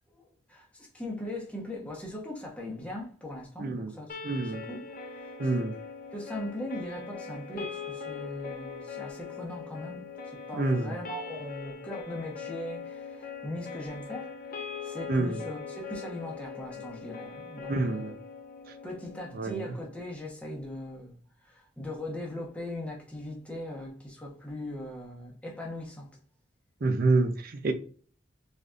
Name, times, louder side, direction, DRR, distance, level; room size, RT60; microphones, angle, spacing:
voice 1, 0.2-4.2 4.4-5.3 6.1-18.1 18.8-21.2 21.4-26.1, left 1 dB, 5° left, 1.0 m, -40 dB
voice 2, 3.6-3.9 4.2-4.6 5.4-5.8 10.6-10.9 15.1-15.4 17.7-18.1 19.3-19.7 26.8-27.7, right 3 dB, 50° right, 0.6 m, -27 dB
sound 1, 4.1-20.1, left 6 dB, 45° left, 0.6 m, -41 dB
4.0 x 3.3 x 2.4 m
head